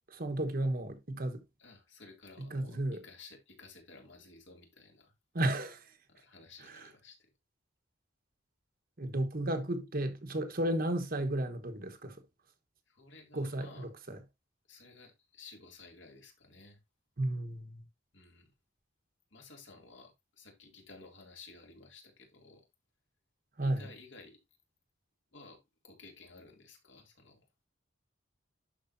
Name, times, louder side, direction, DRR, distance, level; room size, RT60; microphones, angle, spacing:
voice 1, 0.1-1.4 2.4-3.0 5.3-5.9 6.7-6.9 9.0-12.2 13.3-14.2 17.2-17.8 23.6-23.9, right 1 dB, 45° right, 1.2 m, -33 dB
voice 2, 1.6-2.8 3.0-5.1 6.1-7.3 12.9-13.9 14.7-16.8 18.1-18.5 19.3-22.7 23.6-24.4 25.3-27.4, left 3 dB, 65° left, 2.5 m, -54 dB
11.5 x 4.8 x 2.6 m
head